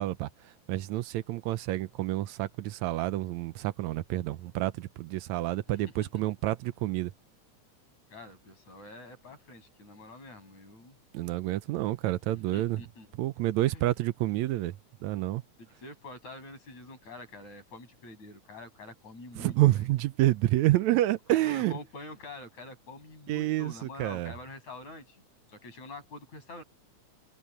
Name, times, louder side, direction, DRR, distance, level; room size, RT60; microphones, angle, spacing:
voice 1, 0.0-7.1 11.1-12.8 13.1-14.8 15.0-15.4 19.4-21.8 23.3-24.3, right 16 dB, 80° right, 1.9 m, -28 dB
voice 2, 8.1-11.0 12.5-13.1 13.7-13.9 15.6-19.8 21.3-25.2 25.5-26.6, left 2 dB, 65° left, 8.0 m, -46 dB
omnidirectional pair, 3.4 m